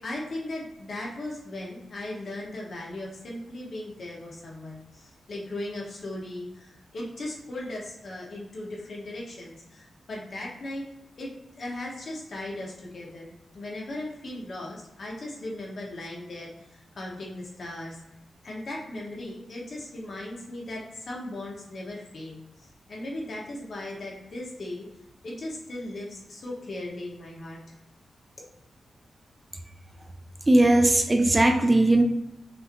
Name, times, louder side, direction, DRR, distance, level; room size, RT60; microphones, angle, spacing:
voice 1, 0.0-10.8 11.2-18.0 18.4-24.9 25.2-27.6, left 1 dB, 60° left, -3 dB, 1.1 m, -37 dB
voice 2, 30.5-32.0, right 1 dB, 20° right, 5 dB, 0.3 m, -19 dB
5.7 x 2.8 x 2.6 m, 0.89 s
wide cardioid pair, 100°, 0 cm